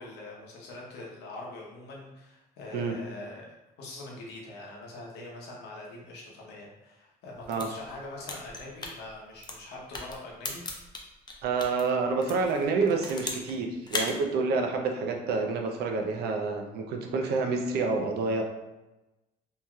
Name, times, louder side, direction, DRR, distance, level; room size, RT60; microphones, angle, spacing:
voice 1, 0.0-10.6, left 2 dB, 75° left, -3 dB, 0.9 m, -43 dB
sound 1, 7.3-11.8 12.2-13.5 13.8-14.1, left 3 dB, 25° left, 0.5 m, -37 dB
voice 2, 11.4-18.4, right 4 dB, 70° right, 3 dB, 0.5 m, -28 dB
3.1 x 2.7 x 2.3 m, 1.0 s
cardioid pair, 110°, 17 cm